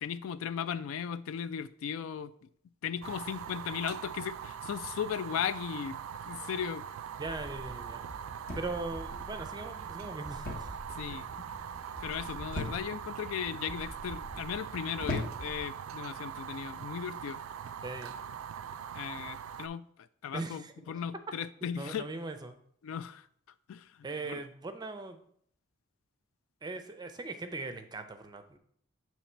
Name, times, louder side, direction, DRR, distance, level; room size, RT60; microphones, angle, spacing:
voice 1, 0.0-2.3 2.8-6.0 6.2-6.8 10.9-11.3 12.0-17.4 18.9-19.9 20.2-22.1 22.8-23.3 23.7-23.9 24.3-24.4, left 8 dB, 85° left, 14 dB, 0.3 m, -36 dB
Fire, 3.0-19.7, right 8 dB, 85° right, 0.3 m, -42 dB
sound 1, 7.2-15.7, equal, 15° left, 0.9 m, -48 dB
voice 2, 7.2-8.0 8.5-10.8 17.8-18.2 20.3-20.7 21.7-22.6 24.0-25.2 26.6-28.6, right 3 dB, 20° right, 7 dB, 0.4 m, -40 dB
sound 2, 8.5-9.0 10.4-10.8 11.1-11.5 12.5-13.1 13.8-14.2 15.0-15.7 16.6-16.9, left 2 dB, 45° left, 0.9 m, -38 dB
7.1 x 3.0 x 4.3 m, 0.65 s
head